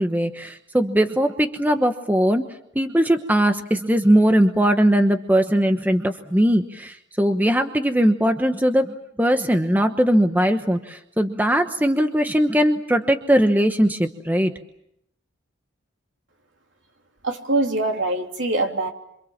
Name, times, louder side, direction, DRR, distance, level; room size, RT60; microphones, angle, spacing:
voice 1, 0.0-2.5 2.7-14.5, equal, 10° right, 7 dB, 1.0 m, -20 dB
voice 2, 17.2-18.9, right 2 dB, 70° right, 3 dB, 3.2 m, -23 dB
27.0 x 26.0 x 7.4 m, 0.75 s
head